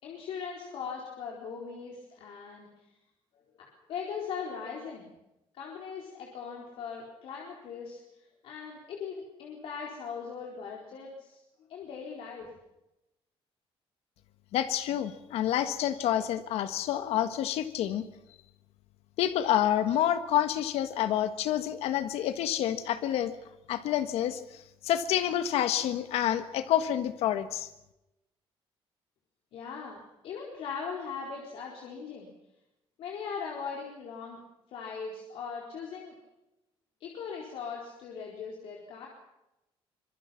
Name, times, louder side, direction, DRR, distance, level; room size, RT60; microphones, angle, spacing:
voice 1, 0.0-2.7 3.6-5.1 5.5-8.0 8.4-11.4 11.7-12.5 29.5-32.3 33.0-34.4 34.7-36.1 37.0-39.1, left 6 dB, 65° left, -1 dB, 4.4 m, -39 dB
voice 2, 14.5-18.0 19.2-23.3 23.7-27.7, left 11 dB, 90° left, 10 dB, 1.5 m, -28 dB
25.5 x 22.5 x 5.9 m, 0.91 s
cardioid pair, 175°, 10 cm